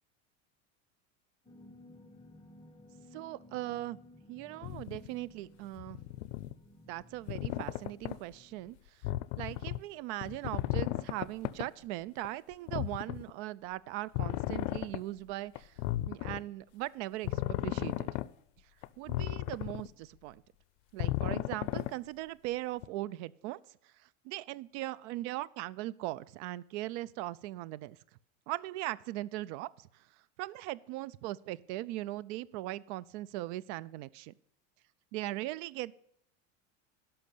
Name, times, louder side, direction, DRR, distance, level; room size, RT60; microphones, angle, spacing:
sound 1, 1.4-8.7, left 1 dB, 15° left, 1.1 m, -57 dB
voice 1, 3.1-4.0 4.3-6.0 6.9-9.0 9.4-15.8 16.1-18.1 19.0-20.4 20.9-28.0 28.5-30.1 30.4-34.3 35.1-35.9, right 16 dB, 65° right, 20 dB, 0.6 m, -39 dB
sound 2, 4.6-5.1 5.8-6.5 7.3-8.2 9.0-9.8 10.2-11.7 12.2-12.3 12.7-13.3 14.1-15.0 15.6-16.4 17.2-18.3 18.8-19.9 21.0-21.9 22.8-22.9, left 16 dB, 70° left, 0.6 m, -34 dB
11.5 x 5.8 x 8.4 m, 0.74 s
supercardioid pair, 110°, 38 cm